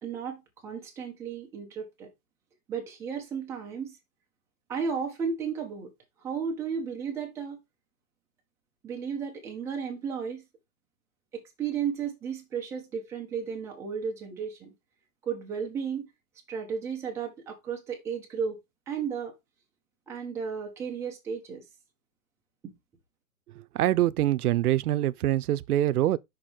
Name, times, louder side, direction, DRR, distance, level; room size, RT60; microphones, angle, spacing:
voice 1, 0.0-2.1 2.7-4.0 4.7-5.9 6.2-7.6 8.8-10.4 11.3-14.7 15.2-16.1 16.5-18.6 18.9-19.3 20.1-21.6 22.6-22.8, right 6 dB, 5° right, 0.7 m, -34 dB
voice 2, 23.7-26.2, right 13 dB, 85° right, 0.6 m, -24 dB
6.1 x 4.2 x 4.8 m
hypercardioid pair, 165°, 44 cm